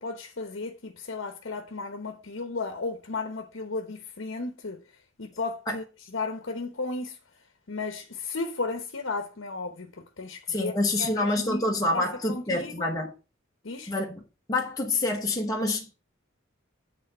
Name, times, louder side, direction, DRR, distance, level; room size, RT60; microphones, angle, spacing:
voice 1, 0.0-4.8 5.2-5.8 6.1-7.2 7.7-10.7 11.0-11.6 11.9-12.9 13.6-13.9, left 3 dB, 70° left, 0.9 m, -34 dB
voice 2, 10.5-13.1 13.9-14.2 14.5-16.0, left 2 dB, 20° left, 1.0 m, -27 dB
8.4 x 3.9 x 6.5 m
head